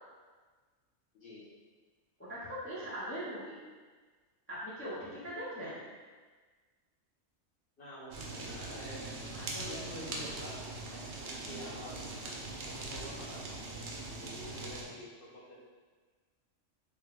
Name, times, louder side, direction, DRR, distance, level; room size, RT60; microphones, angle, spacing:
voice 1, 2.3-3.6 4.5-5.8, equal, 20° left, -9 dB, 0.3 m, -40 dB
voice 2, 5.6-5.9 7.8-10.6 10.9-12.3 12.6-13.4 14.1-15.6, left 1 dB, 50° left, -7 dB, 1.0 m, -48 dB
Fire, 8.1-14.8, right 2 dB, 65° right, 0.7 m, -41 dB
3.3 x 2.2 x 3.5 m, 1.4 s
omnidirectional pair, 1.3 m